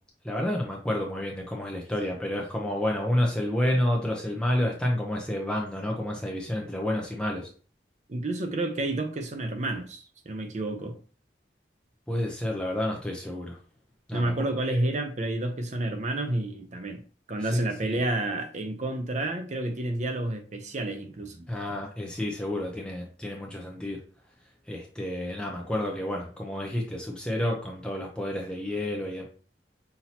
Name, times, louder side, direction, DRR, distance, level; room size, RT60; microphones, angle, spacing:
voice 1, 0.2-7.5 12.1-13.6 14.1-14.3 14.7-14.8 17.4-18.0 21.5-24.0 24.7-29.3, left 1 dB, 5° left, 0.6 m, -30 dB
voice 2, 8.1-11.0 14.1-17.0 17.3-21.5, right 2 dB, 40° right, 0.6 m, -30 dB
5.7 x 2.8 x 2.8 m
head